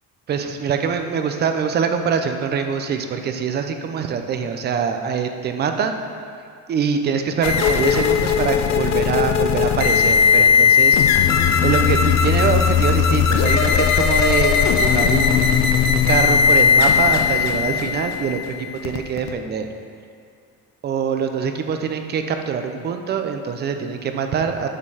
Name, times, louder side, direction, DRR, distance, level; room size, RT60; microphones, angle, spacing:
voice 1, 0.3-6.0 6.7-11.4 11.6-19.7 20.8-24.7, right 6 dB, 30° right, 6 dB, 0.4 m, -24 dB
sound 1, 7.4-19.3, left 7 dB, 55° left, 0.5 m, -17 dB
8.8 x 4.4 x 4.7 m, 2.3 s
cardioid pair, 175°, 34 cm